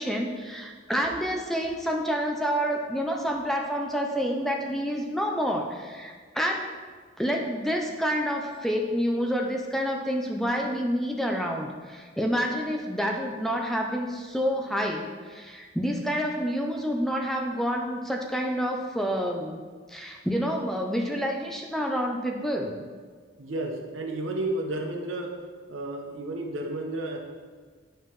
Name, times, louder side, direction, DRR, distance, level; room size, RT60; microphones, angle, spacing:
voice 1, 0.0-6.7 7.2-19.6 19.9-22.8, equal, ahead, 1 dB, 0.5 m, -28 dB
voice 2, 23.4-25.4 25.7-27.2, right 2 dB, 85° right, 1 dB, 1.0 m, -32 dB
10.0 x 4.6 x 3.1 m, 1.6 s
head